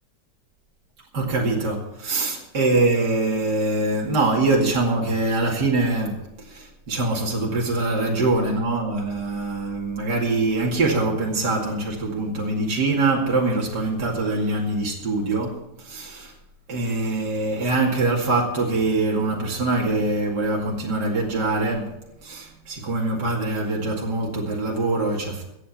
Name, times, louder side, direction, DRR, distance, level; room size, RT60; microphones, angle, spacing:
voice 1, 1.1-16.3 16.7-25.5, right 2 dB, 65° right, 3.0 m, -24 dB
24.5 x 8.5 x 4.3 m
omnidirectional pair, 1.9 m